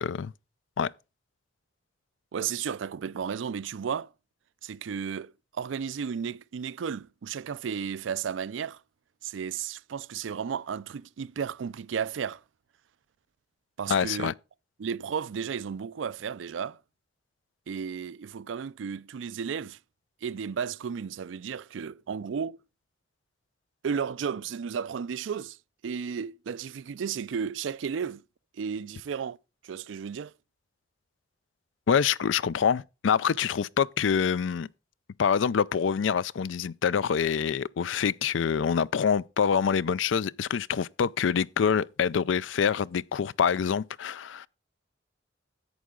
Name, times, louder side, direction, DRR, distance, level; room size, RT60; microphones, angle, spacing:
voice 1, 0.0-0.3 0.8-0.9 13.9-14.3 31.9-34.7 35.2-44.5, left 7 dB, 80° left, 0.4 m, -26 dB
voice 2, 2.3-4.1 4.6-8.8 9.2-12.4 13.8-14.3 14.8-16.8 17.7-19.8 20.2-22.6 23.8-25.6 25.8-28.2 28.5-29.4 29.6-30.3, right 7 dB, 80° right, 0.4 m, -33 dB
11.0 x 8.3 x 3.7 m
head